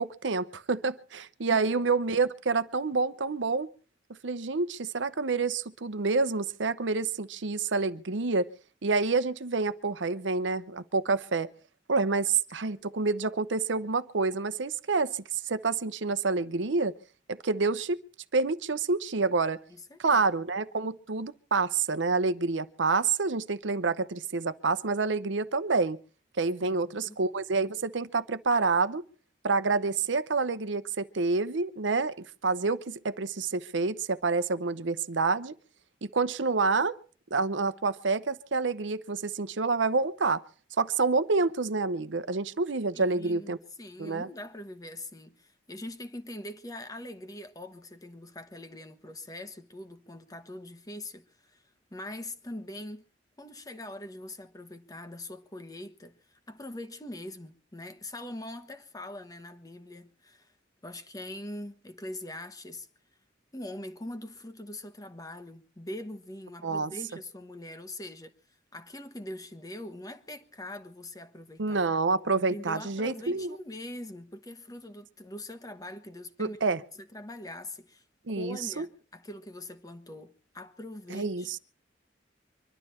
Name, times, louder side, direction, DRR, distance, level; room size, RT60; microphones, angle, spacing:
voice 1, 0.0-3.7 4.2-8.5 8.8-11.5 11.9-16.9 17.3-18.0 18.3-19.6 20.0-26.0 26.4-29.0 29.4-32.1 32.4-35.5 36.0-36.9 37.3-40.4 40.8-43.6 44.0-44.3 66.6-66.9 71.6-73.6 76.4-76.8 78.3-78.8 81.1-81.6, right 4 dB, 85° right, 0.8 m, -28 dB
voice 2, 19.7-20.2 26.6-27.2 42.9-51.6 51.9-53.0 53.4-60.5 60.8-62.9 63.5-68.3 68.7-71.8 72.4-76.6 76.9-78.0 78.3-81.5, left 1 dB, 20° left, 1.2 m, -42 dB
24.5 x 12.0 x 4.4 m
head